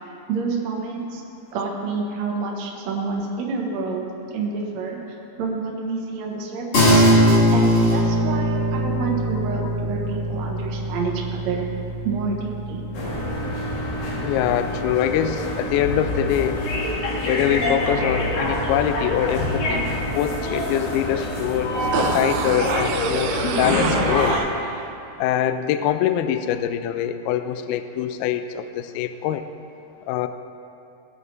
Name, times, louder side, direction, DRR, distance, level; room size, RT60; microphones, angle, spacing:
voice 1, 0.3-1.2 1.5-5.0 5.4-7.0 7.5-11.7 12.0-12.8, right 4 dB, 55° right, -1 dB, 2.0 m, -28 dB
sound 1, 6.7-16.5, equal, 35° left, 3.9 m, -22 dB
sound 2, 12.9-24.4, left 1 dB, 60° left, 3.1 m, -26 dB
voice 2, 14.2-16.6 17.3-19.9 20.1-24.4 25.2-29.4 30.1-30.3, left 10 dB, 85° left, 10 dB, 2.2 m, -24 dB
sound 3, 21.9-24.9 25.2-25.3, right 7 dB, 90° right, 2.0 m, -27 dB
18.0 x 6.6 x 4.4 m, 2.6 s
omnidirectional pair, 4.9 m